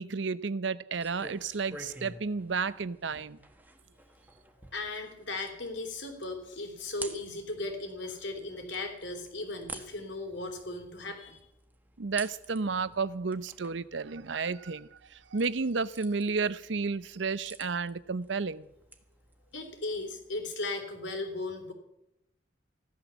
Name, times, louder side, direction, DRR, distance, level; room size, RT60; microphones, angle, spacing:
voice 1, 0.0-3.4 12.0-18.7, right 4 dB, 75° right, 0.7 m, -32 dB
sound 1, 0.9-20.6, right 2 dB, 10° right, 1.3 m, -51 dB
voice 2, 4.6-11.4 19.5-21.7, left 2 dB, 75° left, 3.6 m, -37 dB
15.5 x 12.0 x 7.1 m
head